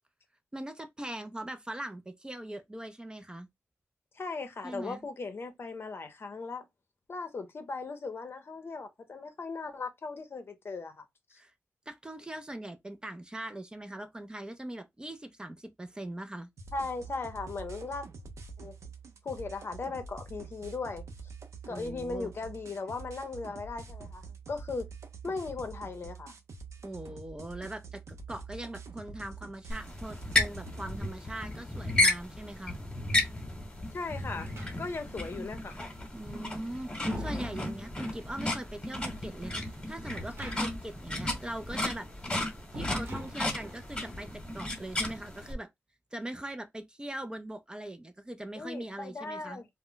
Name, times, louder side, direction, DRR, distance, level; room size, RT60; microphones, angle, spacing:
voice 1, 0.5-3.5 4.6-5.1 11.4-11.5 11.9-16.5 21.7-22.3 26.8-32.8 36.1-42.1 42.7-45.7 46.1-49.6, right 1 dB, 15° right, 0.4 m, -41 dB
voice 2, 4.1-6.6 7.1-11.0 11.3-11.4 16.7-18.1 18.6-18.7 19.2-21.0 21.7-24.9 25.2-26.3 33.9-34.5 34.8-35.8 48.6-49.7, left 3 dB, 50° left, 0.6 m, -38 dB
sound 1, 16.6-31.0, right 4 dB, 80° right, 0.5 m, -46 dB
sound 2, 29.7-45.5, left 1 dB, 20° left, 1.0 m, -33 dB
sound 3, 34.3-35.2 36.4-38.3 40.1-41.0 41.2-41.3 42.7-43.9, left 1 dB, 55° right, 1.0 m, -43 dB
2.1 x 2.1 x 3.7 m
wide cardioid pair, 85°, 5 cm